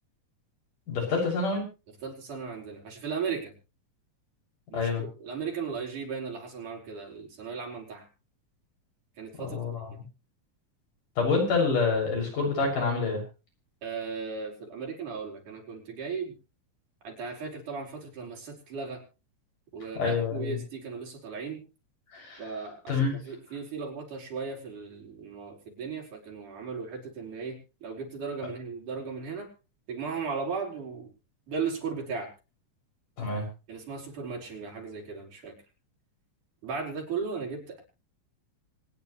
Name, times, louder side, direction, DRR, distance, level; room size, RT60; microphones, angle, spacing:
voice 1, 0.9-1.6 4.7-5.0 9.4-9.9 11.2-13.2 20.0-20.6 22.1-22.4 22.9-23.1 33.2-33.5, left 4 dB, 85° left, 0 dB, 8.2 m, -27 dB
voice 2, 2.0-3.5 4.7-8.1 9.2-9.6 9.9-10.0 13.8-16.3 17.0-19.0 19.7-21.6 22.4-29.5 29.9-31.1 31.5-32.3 33.7-35.6 36.6-37.8, right 5 dB, 75° right, 1 dB, 5.9 m, -36 dB
25.0 x 10.0 x 3.2 m, 0.32 s
omnidirectional pair, 3.6 m